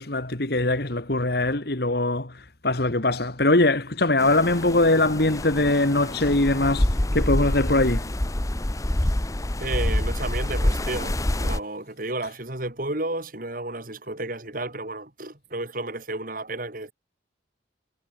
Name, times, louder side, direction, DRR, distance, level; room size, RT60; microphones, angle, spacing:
voice 1, 0.0-2.3 2.6-8.1, left 2 dB, 55° left, 2.1 m, -22 dB
sound 1, 4.2-11.6, left 1 dB, 20° left, 0.8 m, -26 dB
voice 2, 9.6-16.9, right 2 dB, 50° right, 4.4 m, -32 dB
head